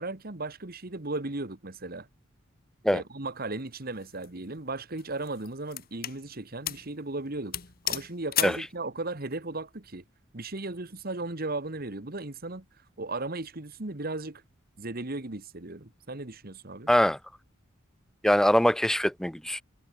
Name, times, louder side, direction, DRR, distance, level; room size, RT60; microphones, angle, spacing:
voice 1, 0.0-2.1 2.9-7.6 7.8-10.0 10.3-12.7 13.0-14.4 14.8-16.9, right 2 dB, 45° right, 1.7 m, -36 dB
sound 1, 4.0-4.3 5.0-6.2 6.7-6.9 7.2-7.3 7.5-8.7, left 12 dB, 45° left, 1.7 m, -33 dB
voice 2, 16.9-17.2 18.2-19.6, equal, 5° left, 0.4 m, -23 dB
head